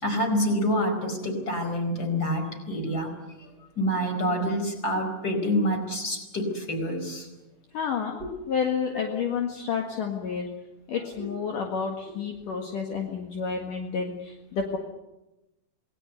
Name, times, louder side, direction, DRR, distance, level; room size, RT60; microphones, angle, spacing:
voice 1, 0.0-7.3 8.9-9.0 11.1-11.3, equal, 25° left, 5 dB, 4.9 m, -27 dB
voice 2, 7.7-8.2 8.5-10.5 10.9-14.8, left 6 dB, 60° left, 2 dB, 3.2 m, -30 dB
27.0 x 20.0 x 8.2 m, 0.99 s
omnidirectional pair, 4.6 m